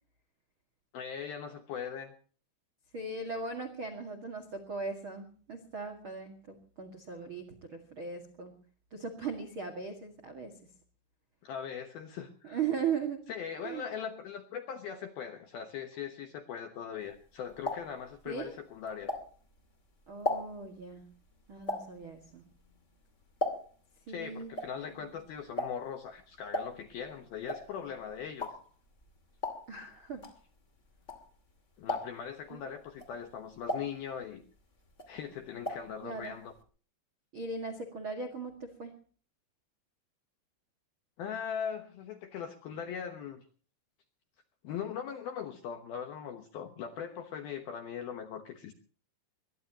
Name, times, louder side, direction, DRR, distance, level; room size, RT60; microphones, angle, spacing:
voice 1, 0.9-2.1 11.4-12.6 13.3-19.1 24.1-28.5 31.8-34.4 35.1-36.5 41.2-43.4 44.6-48.7, left 7 dB, 75° left, 6 dB, 2.2 m, -40 dB
voice 2, 2.9-8.5 8.9-10.6 12.4-13.2 13.6-13.9 18.2-18.5 20.1-21.0 21.5-22.4 24.1-24.5 24.9-25.1 29.7-30.2 32.5-32.6 36.0-36.4 37.3-38.9, right 5 dB, 75° right, 7 dB, 1.1 m, -38 dB
sound 1, 17.1-19.6 20.0-23.9 24.2-31.5 31.8-32.4 32.9-34.6 34.9-36.0 36.2-36.3 36.6-36.7, equal, 50° left, 0.8 m, -38 dB
22.0 x 21.0 x 3.0 m, 0.42 s
omnidirectional pair, 5.9 m